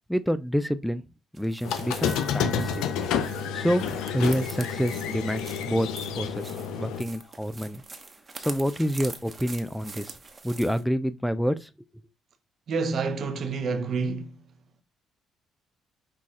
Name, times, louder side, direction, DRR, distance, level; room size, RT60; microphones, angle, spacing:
voice 1, 0.1-1.0 1.3-2.9 3.5-5.9 6.2-7.8 8.4-10.2 10.4-11.7, equal, 5° left, 0.4 m, -28 dB
sound 1, 1.3-10.8, right 3 dB, 30° right, 1.0 m, -44 dB
Squeak, 1.6-7.0, left 7 dB, 75° left, 0.5 m, -30 dB
sound 2, 2.0-7.6, left 5 dB, 45° left, 0.9 m, -46 dB
voice 2, 12.7-14.3, right 4 dB, 55° right, 0.7 m, -28 dB
5.7 x 2.4 x 3.6 m
hypercardioid pair, 55°, 0 cm